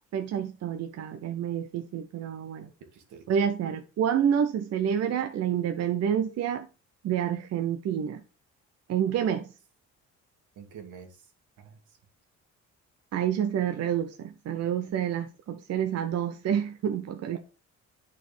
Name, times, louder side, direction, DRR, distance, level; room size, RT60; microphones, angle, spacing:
voice 1, 0.1-2.7 3.3-6.7 7.0-8.2 8.9-9.5 13.1-17.4, right 9 dB, 55° right, 0.6 m, -28 dB
voice 2, 2.9-3.2 10.5-11.3 11.6-12.0 17.3-17.4, right 7 dB, 80° right, 1.5 m, -48 dB
9.2 x 4.2 x 3.2 m
cardioid pair, 90°, 30 cm